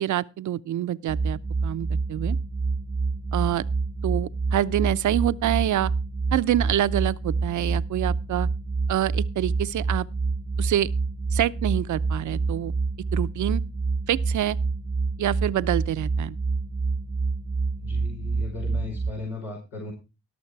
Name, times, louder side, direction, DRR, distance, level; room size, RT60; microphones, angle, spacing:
voice 1, 0.0-2.4 3.3-3.6 4.0-5.9 6.3-8.5 8.9-10.1 10.6-10.9 11.3-12.7 13.1-13.6 14.1-14.6 15.2-16.4, right 12 dB, 70° right, 0.7 m, -26 dB
sound 1, 1.1-19.1, right 4 dB, 25° right, 0.9 m, -27 dB
voice 2, 17.8-19.9, left 4 dB, 90° left, 5.0 m, -36 dB
17.5 x 6.5 x 4.7 m
supercardioid pair, 60°, 31 cm